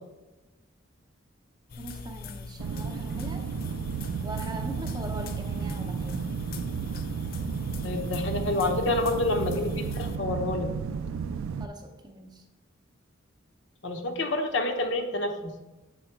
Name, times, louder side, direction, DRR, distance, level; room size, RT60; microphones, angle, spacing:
sound 1, 1.7-10.2, left 4 dB, 45° left, 0.4 m, -41 dB
voice 1, 1.8-3.4 4.2-6.2 11.6-12.4, right 1 dB, 20° right, 3 dB, 0.6 m, -42 dB
sound 2, 2.6-11.7, right 6 dB, 85° right, 0.3 m, -33 dB
voice 2, 7.8-10.7 13.8-15.5, left 2 dB, 60° left, 5 dB, 0.8 m, -28 dB
7.2 x 3.7 x 4.5 m, 1.1 s
head